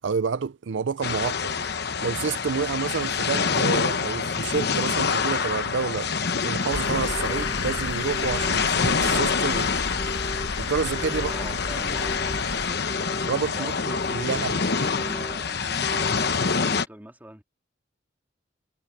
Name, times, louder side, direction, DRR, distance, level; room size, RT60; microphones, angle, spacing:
voice 1, 0.0-1.5 2.0-6.1 6.4-9.7 10.6-11.3 13.3-14.5, right 5 dB, 70° right, 0.5 m, -29 dB
sound 1, 1.0-16.9, left 5 dB, 55° left, 1.0 m, -26 dB
sound 2, 5.8-5.9 6.8-7.6 8.0-8.6 9.0-9.6 10.0-10.5 10.9-11.5 11.9-12.5 12.9-13.4 13.8-14.4 14.8-15.4 15.8-16.4, equal, 20° left, 0.7 m, -38 dB
sound 3, 6.7-12.7, left 3 dB, 75° left, 1.5 m, -32 dB
voice 2, 11.1-12.8 13.5-17.4, right 1 dB, 10° right, 2.3 m, -43 dB
head